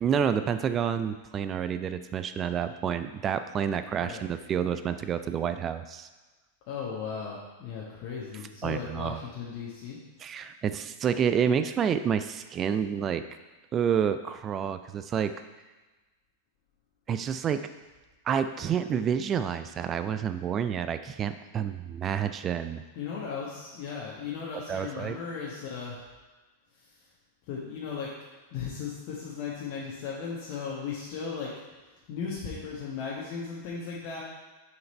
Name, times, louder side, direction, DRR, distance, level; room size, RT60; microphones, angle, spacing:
voice 1, 0.0-6.1 8.6-9.2 10.2-13.2 13.7-15.3 17.1-17.7 18.3-22.8 24.7-25.2, right 8 dB, 25° right, 10 dB, 0.4 m, -29 dB
voice 2, 6.7-10.0 22.9-26.0 27.5-28.1 28.5-31.5 32.1-34.2, left 6 dB, 45° left, -5 dB, 1.3 m, -36 dB
6.3 x 4.7 x 4.4 m, 1.2 s
figure-of-eight pair, 90°, 0 cm